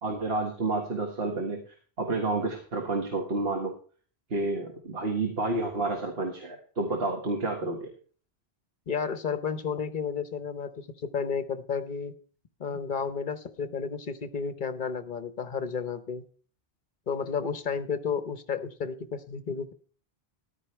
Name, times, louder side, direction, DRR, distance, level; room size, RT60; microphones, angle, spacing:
voice 1, 0.0-1.6 2.0-3.7 4.3-7.9, right 2 dB, 65° right, 1 dB, 1.8 m, -30 dB
voice 2, 8.9-12.1 12.6-16.2 17.1-19.7, left 6 dB, 50° left, 11 dB, 1.0 m, -32 dB
13.5 x 11.0 x 3.2 m, 0.42 s
omnidirectional pair, 1.1 m